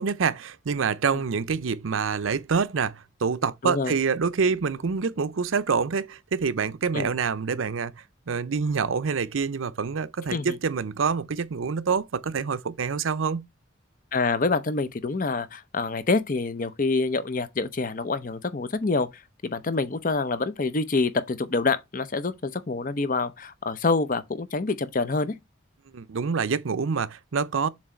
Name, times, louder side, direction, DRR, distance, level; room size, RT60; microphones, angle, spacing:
voice 1, 0.0-7.9 8.3-13.4 25.9-27.7, right 5 dB, 75° right, 0.6 m, -26 dB
voice 2, 3.6-3.9 6.9-7.1 10.3-10.6 14.1-25.3, left 3 dB, 40° left, 0.6 m, -26 dB
7.4 x 3.1 x 4.4 m
head